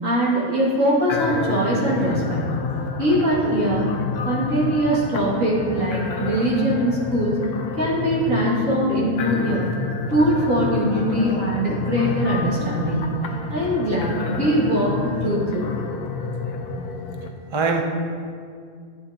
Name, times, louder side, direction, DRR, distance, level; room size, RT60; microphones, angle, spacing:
voice 1, 0.0-2.5 3.0-3.9 4.2-7.4 7.8-9.7 10.1-13.0 13.5-15.7, right 1 dB, 60° right, -7 dB, 2.7 m, -22 dB
sound 1, 1.1-17.3, left 4 dB, 90° left, 1.3 m, -29 dB
voice 2, 12.5-12.9 17.5-17.8, right 4 dB, 35° right, 2 dB, 0.4 m, -24 dB
12.0 x 8.5 x 2.9 m, 2.2 s
omnidirectional pair, 1.6 m